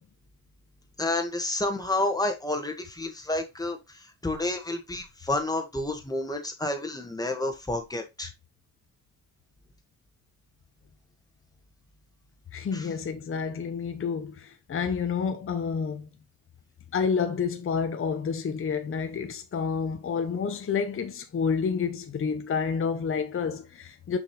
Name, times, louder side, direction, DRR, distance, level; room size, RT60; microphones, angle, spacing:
voice 1, 1.0-3.8 4.2-8.3 12.7-12.8, left 2 dB, 10° left, 1.7 m, -29 dB
voice 2, 12.5-16.1 16.9-24.2, left 6 dB, 40° left, 0.9 m, -29 dB
6.1 x 5.4 x 3.2 m
cardioid pair, 110°, 34 cm